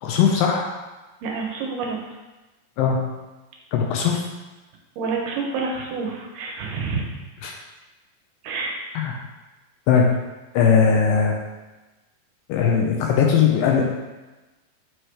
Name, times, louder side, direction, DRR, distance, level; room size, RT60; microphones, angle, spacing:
voice 1, 0.0-0.6 2.8-3.0 3.7-4.2 7.4-7.5 9.0-9.1 9.9-10.0 10.5-11.4 12.5-13.8, left 7 dB, 80° left, 1 dB, 2.2 m, -19 dB
voice 2, 1.2-2.0 5.0-7.2 8.4-8.8, right 4 dB, 75° right, -1 dB, 2.3 m, -28 dB
7.7 x 4.7 x 3.3 m, 1.1 s
omnidirectional pair, 4.3 m